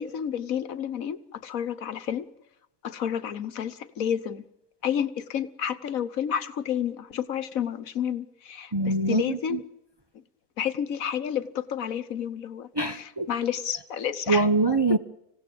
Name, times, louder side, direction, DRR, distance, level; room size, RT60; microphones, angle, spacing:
voice 1, 0.0-2.3 2.8-4.5 4.8-9.6 10.6-14.5, left 9 dB, 75° left, 15 dB, 1.5 m, -30 dB
voice 2, 8.7-9.6 12.8-13.3 14.3-15.0, right 3 dB, 20° right, 7 dB, 0.8 m, -24 dB
26.0 x 17.0 x 8.6 m, 0.85 s
omnidirectional pair, 1.5 m